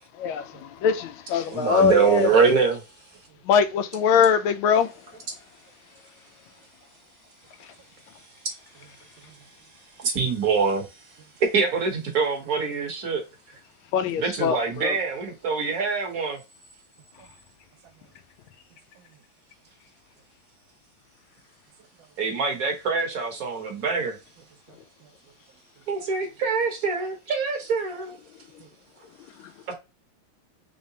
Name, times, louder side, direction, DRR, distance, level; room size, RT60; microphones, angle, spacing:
voice 1, 0.2-2.3 3.5-4.9 13.9-15.0, left 7 dB, 90° left, 1.4 m, -22 dB
voice 2, 1.5-2.8 10.0-10.9 11.5-13.2 14.2-16.4 22.2-24.2 25.9-28.1 29.7-29.8, right 5 dB, 55° right, 1.2 m, -24 dB
voice 3, 18.7-19.2 24.7-25.3 26.2-26.3 28.6-28.7, right 8 dB, 75° right, 1.3 m, -56 dB
3.9 x 3.2 x 2.7 m
omnidirectional pair, 2.2 m